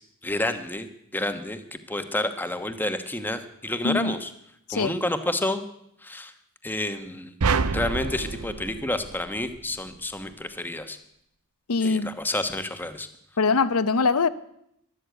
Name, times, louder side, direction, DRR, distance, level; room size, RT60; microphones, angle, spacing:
voice 1, 0.2-4.3 4.7-5.6 6.0-6.3 6.6-7.3 7.7-11.0 11.8-13.1, left 1 dB, 10° left, 8 dB, 1.1 m, -29 dB
sound 1, 7.4-9.8, right 4 dB, 80° right, 0.7 m, -27 dB
voice 2, 11.7-12.1 13.4-14.3, left 4 dB, 75° left, 15 dB, 0.8 m, -22 dB
13.0 x 12.0 x 7.9 m, 0.75 s
head